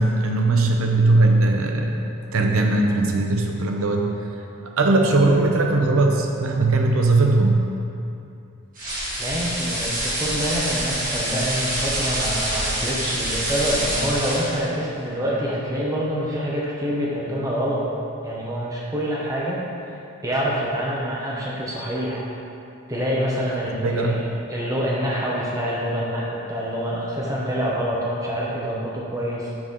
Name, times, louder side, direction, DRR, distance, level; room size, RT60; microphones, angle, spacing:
voice 1, 0.0-1.9 2.3-4.1 4.8-7.6 23.8-24.2, right 2 dB, 80° right, 2 dB, 0.7 m, -19 dB
sound 1, 8.8-14.7, right 1 dB, 40° right, 1.4 m, -26 dB
voice 2, 9.2-17.8 18.2-19.6 20.2-22.2 22.9-29.5, equal, 15° right, -5 dB, 0.7 m, -26 dB
5.9 x 4.0 x 5.3 m, 2.7 s
head